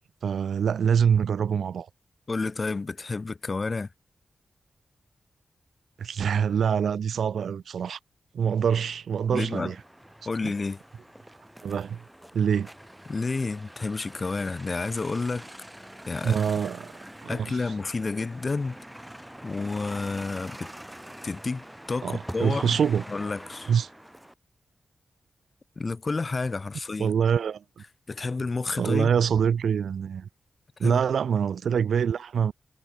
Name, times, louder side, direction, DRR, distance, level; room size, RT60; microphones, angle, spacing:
voice 1, 0.2-1.9 6.0-8.0 8.3-9.8 10.4-10.5 11.6-12.0 12.3-12.7 16.2-16.9 17.2-17.6 22.0-23.0 23.7-23.9 27.0-27.8 28.8-30.3 30.8-32.5, right 7 dB, 85° right, 0.4 m, -25 dB
voice 2, 2.3-3.9 9.3-9.7 10.3-10.8 13.1-15.5 16.1-16.4 17.3-18.8 19.4-20.7 21.2-22.8 23.1-23.7 25.8-27.1 28.1-29.1 30.8-31.0, left 3 dB, 40° left, 0.3 m, -30 dB
sound 1, 9.4-24.3, equal, 5° right, 1.2 m, -45 dB
cardioid pair, 65°, 0 cm